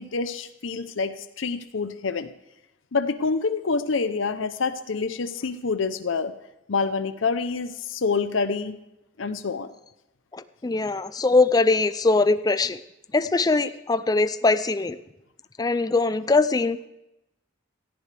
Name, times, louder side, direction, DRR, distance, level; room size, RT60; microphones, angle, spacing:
voice 1, 0.0-2.3 2.9-6.3 6.7-8.8 9.2-9.7, left 4 dB, 75° left, 10 dB, 0.7 m, -27 dB
voice 2, 10.3-12.8 13.1-15.0 15.6-16.8, left 3 dB, 20° left, 13 dB, 0.4 m, -22 dB
17.0 x 14.0 x 3.4 m, 0.89 s
head